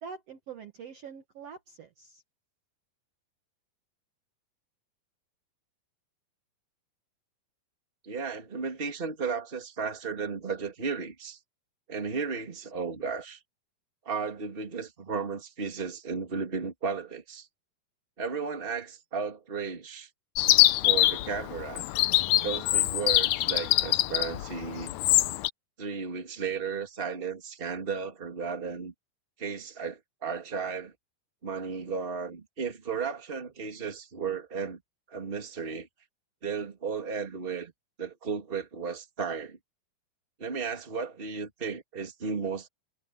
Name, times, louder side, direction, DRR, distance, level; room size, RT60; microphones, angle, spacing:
voice 1, 0.0-2.2, right 6 dB, 55° right, 1.9 m, -44 dB
voice 2, 8.0-11.4 11.9-13.4 14.0-17.5 18.2-20.1 20.8-21.9 22.4-24.9 25.8-28.9 29.4-30.9 31.4-34.8 35.1-35.9 36.4-37.7 38.0-39.6 40.4-42.7, right 5 dB, 15° right, 2.3 m, -34 dB
Chirp tweet, 20.4-25.5, left 16 dB, 80° left, 1.6 m, -24 dB
omnidirectional pair, 4.1 m